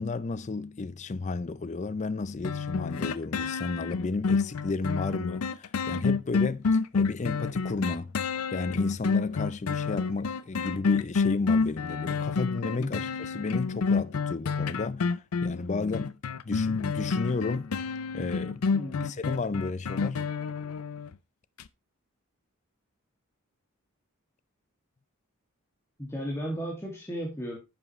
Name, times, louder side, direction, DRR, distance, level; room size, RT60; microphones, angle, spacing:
voice 1, 0.0-8.1 8.5-16.2 16.4-17.7 18.1-18.7 19.0-20.2, left 3 dB, 35° left, 0.4 m, -32 dB
sound 1, 2.4-21.1 21.6-21.7, left 5 dB, 85° left, 0.5 m, -29 dB
voice 2, 18.7-19.1 26.0-27.6, equal, 10° left, 2.0 m, -35 dB
10.0 x 7.4 x 3.1 m
head